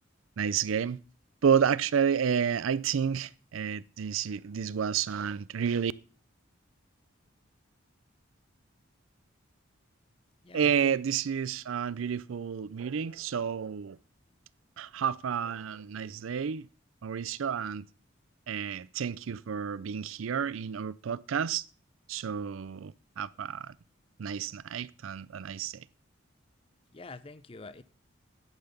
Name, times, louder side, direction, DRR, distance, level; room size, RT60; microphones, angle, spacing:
voice 1, 0.4-1.0 1.4-5.9 10.5-14.0 14.8-16.7 17.0-17.8 18.5-21.7 22.1-23.7 24.2-25.9, right 7 dB, 85° right, 0.4 m, -30 dB
voice 2, 10.4-11.0 26.9-27.8, left 3 dB, 25° left, 0.5 m, -46 dB
10.5 x 5.7 x 6.6 m
head